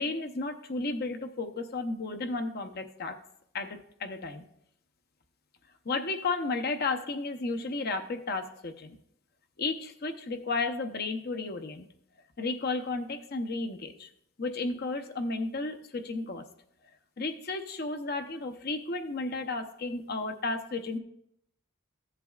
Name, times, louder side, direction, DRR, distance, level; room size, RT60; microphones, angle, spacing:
voice 1, 0.0-3.2 3.5-4.5 5.8-9.0 9.6-11.9 12.4-14.1 14.4-16.5 17.2-21.0, left 3 dB, 45° left, 6 dB, 0.7 m, -33 dB
14.5 x 7.5 x 2.4 m, 0.73 s
head